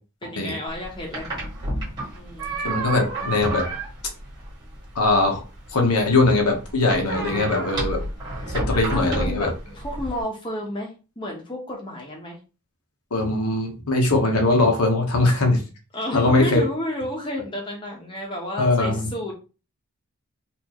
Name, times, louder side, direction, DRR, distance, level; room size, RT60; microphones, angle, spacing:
voice 1, 0.2-1.3 2.1-2.6 7.1-8.1 8.4-12.4 15.9-19.3, left 1 dB, 20° left, -1 dB, 0.9 m, -32 dB
sound 1, 0.7-10.2, right 1 dB, 20° right, 1.9 m, -31 dB
voice 2, 2.6-3.7 4.9-5.4 5.7-8.0 8.5-9.5 13.1-15.6 16.1-16.6 18.6-19.3, left 2 dB, 85° left, 2 dB, 1.1 m, -21 dB
4.4 x 2.6 x 3.0 m, 0.32 s
head